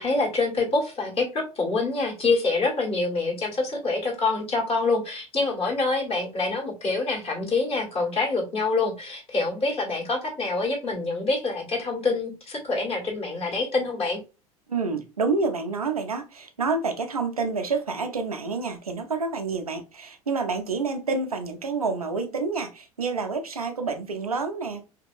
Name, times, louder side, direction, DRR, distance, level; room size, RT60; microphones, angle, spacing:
voice 1, 0.0-14.2, left 3 dB, 30° left, 1.4 m, -26 dB
voice 2, 14.7-24.9, right 4 dB, 90° right, 0.4 m, -28 dB
2.8 x 2.6 x 2.4 m
figure-of-eight pair, 75°, 18 cm